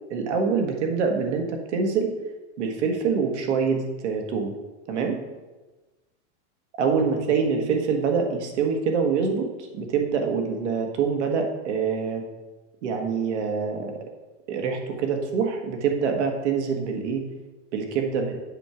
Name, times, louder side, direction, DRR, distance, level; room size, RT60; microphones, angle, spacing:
voice 1, 0.1-2.1 2.6-4.5 4.9-5.2 6.8-9.5 9.7-12.2 12.8-14.0 14.5-17.2 17.7-18.2, right 5 dB, 75° right, 3 dB, 1.6 m, -25 dB
7.5 x 5.9 x 4.9 m, 1.2 s
supercardioid pair, 165°, 35 cm